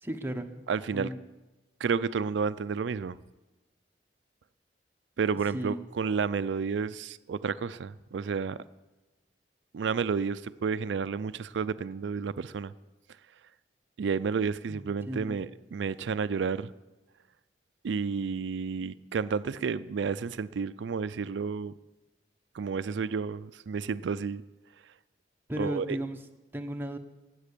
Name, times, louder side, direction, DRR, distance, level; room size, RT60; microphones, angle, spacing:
voice 1, 0.0-1.2 5.5-5.8 14.7-15.4 25.5-26.2 26.5-27.0, right 1 dB, 10° right, 4 dB, 0.9 m, -35 dB
voice 2, 0.7-1.1 1.8-3.2 5.2-8.6 9.7-12.7 14.0-16.7 17.8-21.7 22.5-24.4 25.6-26.0, right 5 dB, 90° right, 14 dB, 0.4 m, -31 dB
18.0 x 8.0 x 6.8 m, 1.1 s
head